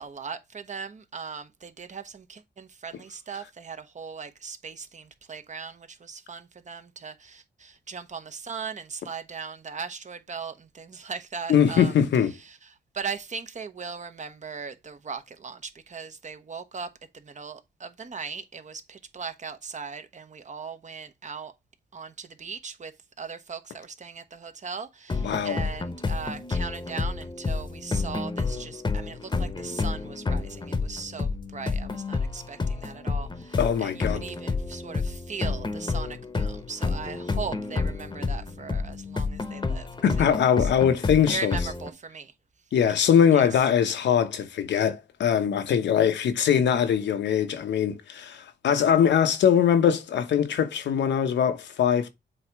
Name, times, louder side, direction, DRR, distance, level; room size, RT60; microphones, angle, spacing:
voice 1, 0.0-11.9 12.3-21.5 21.9-40.7 41.3-42.3 43.3-43.6, right 5 dB, 40° right, 1.0 m, -39 dB
voice 2, 11.5-12.3 25.2-25.6 33.6-34.2 40.0-41.6 42.7-52.1, left 8 dB, 85° left, 0.9 m, -22 dB
sound 1, 25.1-41.9, left 4 dB, 25° left, 0.9 m, -30 dB
7.6 x 2.9 x 4.6 m
cardioid pair, 95°, 18 cm